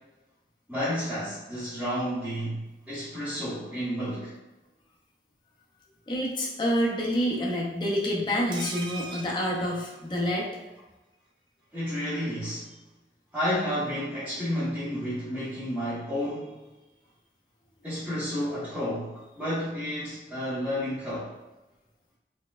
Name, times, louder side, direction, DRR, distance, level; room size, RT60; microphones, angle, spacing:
voice 1, 0.7-4.3 11.7-12.7 13.3-16.6 17.8-21.3, equal, 5° right, -14 dB, 0.9 m, -31 dB
voice 2, 6.1-10.5, equal, 25° left, -3 dB, 0.5 m, -27 dB
sound 1, 8.5-10.5 10.8-10.9 11.1-11.3, right 3 dB, 25° right, 0.3 m, -41 dB
4.2 x 2.2 x 2.3 m, 1.1 s
head